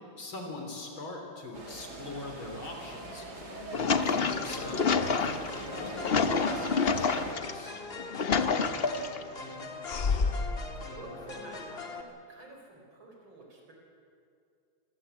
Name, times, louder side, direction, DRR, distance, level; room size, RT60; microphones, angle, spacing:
voice 1, 0.0-7.8, left 2 dB, 80° left, 3 dB, 4.3 m, -43 dB
sound 1, 1.5-7.3, right 2 dB, 55° right, 3.4 m, -42 dB
sound 2, 3.4-7.5 8.0-9.2 9.9-10.6, left 5 dB, 50° left, 0.7 m, -28 dB
sound 3, 4.3-12.0, left 3 dB, 30° left, 1.7 m, -42 dB
voice 2, 10.7-13.7, right 2 dB, 70° right, 0 dB, 5.5 m, -49 dB
25.0 x 17.0 x 8.3 m, 2.4 s
omnidirectional pair, 2.2 m